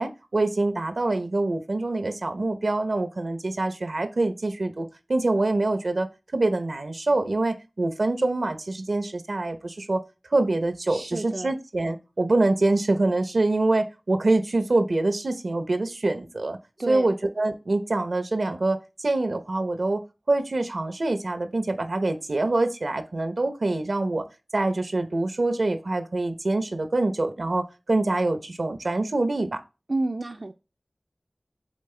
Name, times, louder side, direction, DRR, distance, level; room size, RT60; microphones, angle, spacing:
voice 1, 0.0-10.0 10.3-16.6 16.9-20.0 20.3-24.2 24.5-29.6, right 2 dB, 80° right, 0.8 m, -25 dB
voice 2, 10.9-11.5 16.8-17.1 29.9-30.5, right 2 dB, 55° right, 0.4 m, -30 dB
7.4 x 4.0 x 3.3 m
wide cardioid pair, 50°, 0 cm